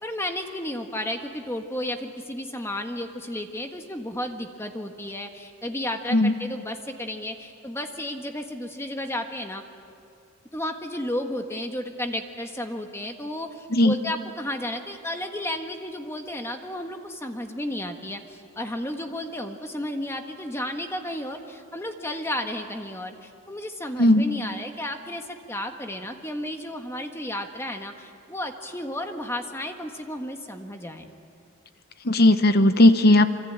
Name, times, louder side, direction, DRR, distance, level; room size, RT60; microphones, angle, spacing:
voice 1, 0.0-9.6 10.5-31.1, left 1 dB, 10° left, 4 dB, 1.5 m, -33 dB
voice 2, 32.0-33.4, left 1 dB, 45° left, 10 dB, 1.0 m, -17 dB
26.0 x 25.0 x 8.9 m, 2.3 s
head